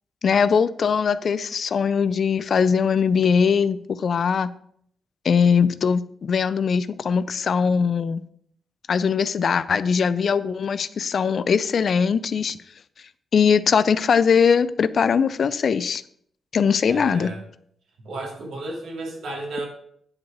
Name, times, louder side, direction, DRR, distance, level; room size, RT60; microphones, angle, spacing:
voice 1, 0.2-4.5 5.2-8.2 8.9-12.6 13.3-16.0 16.5-17.3, left 6 dB, 55° left, 16 dB, 0.4 m, -21 dB
voice 2, 16.8-17.4 18.0-19.7, right 2 dB, 70° right, 1 dB, 2.3 m, -33 dB
9.6 x 4.7 x 4.9 m, 0.67 s
cardioid pair, 105°, 0 cm